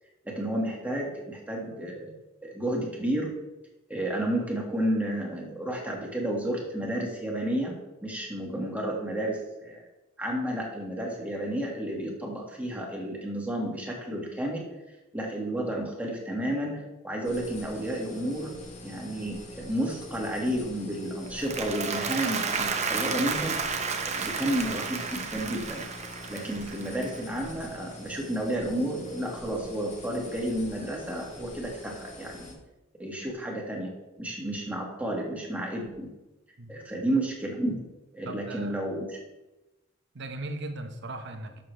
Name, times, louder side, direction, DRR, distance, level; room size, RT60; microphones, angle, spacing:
voice 1, 0.3-2.1 2.4-3.3 3.9-7.8 8.0-9.8 10.2-14.6 15.1-18.5 18.8-23.6 24.0-25.8 26.3-32.6 33.0-33.9 34.2-36.1 36.7-37.8 38.1-39.1, right 1 dB, 10° right, -1 dB, 1.9 m, -31 dB
sound 1, 17.2-32.5, left 2 dB, 35° left, 1.6 m, -45 dB
Applause, 21.2-27.6, right 5 dB, 35° right, 0.9 m, -32 dB
voice 2, 38.2-38.7 40.1-41.6, right 2 dB, 65° right, 6 dB, 1.0 m, -38 dB
11.0 x 6.9 x 3.4 m, 1.0 s
head